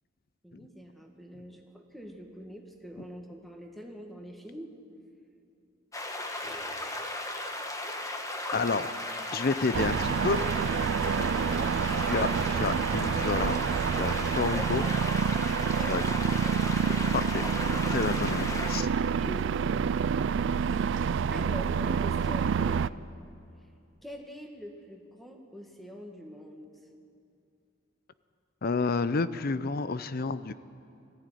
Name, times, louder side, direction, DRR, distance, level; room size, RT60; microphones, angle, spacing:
voice 1, 0.4-4.7 6.4-7.0 10.3-11.4 15.6-16.2 19.1-20.0 20.7-22.8 23.6-23.7 24.0-26.7, equal, ahead, 2 dB, 1.9 m, -44 dB
sound 1, 5.9-18.8, left 1 dB, 15° left, 1.3 m, -36 dB
voice 2, 8.5-8.9 9.3-10.4 12.0-13.6 13.9-14.8 15.9-16.0 17.1-17.4 17.9-18.9 28.6-30.5, left 4 dB, 50° left, 14 dB, 0.6 m, -30 dB
sound 2, 9.7-22.9, right 6 dB, 65° right, 0.4 m, -28 dB
20.0 x 15.0 x 9.2 m, 2.6 s
head